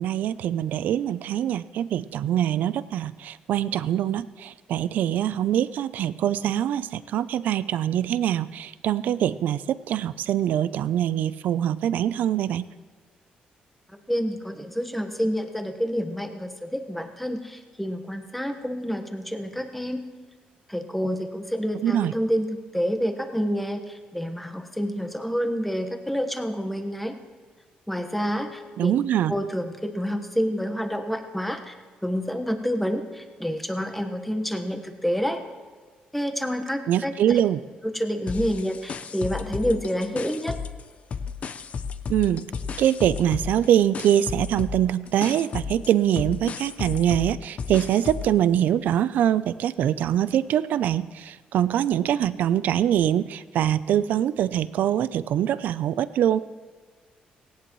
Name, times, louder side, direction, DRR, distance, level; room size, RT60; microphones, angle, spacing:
voice 1, 0.0-12.7 21.8-22.1 28.8-29.3 36.9-37.6 42.1-42.4 42.8-56.4, right 11 dB, 75° right, 16 dB, 0.5 m, -24 dB
voice 2, 14.1-20.0 20.7-23.8 24.1-27.2 27.9-28.9 29.3-31.7 32.0-35.4 36.1-37.4 37.8-40.6, equal, 5° left, 6 dB, 1.3 m, -28 dB
sound 1, 38.3-40.8 41.1-48.4, left 5 dB, 45° left, 0.7 m, -33 dB
17.5 x 17.0 x 3.1 m, 1.5 s
cardioid pair, 105°, 3 cm